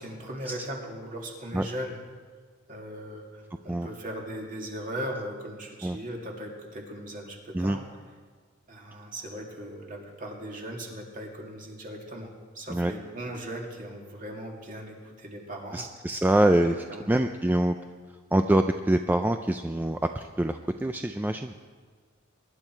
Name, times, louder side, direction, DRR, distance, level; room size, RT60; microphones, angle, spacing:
voice 1, 0.0-2.0 2.7-7.8 8.7-12.3 12.5-15.9 16.6-17.1, equal, 40° right, 0 dB, 2.4 m, -38 dB
voice 2, 15.7-16.8 17.1-17.8 18.3-21.5, right 1 dB, 10° right, 7 dB, 0.4 m, -25 dB
22.5 x 11.0 x 4.5 m, 1.5 s
head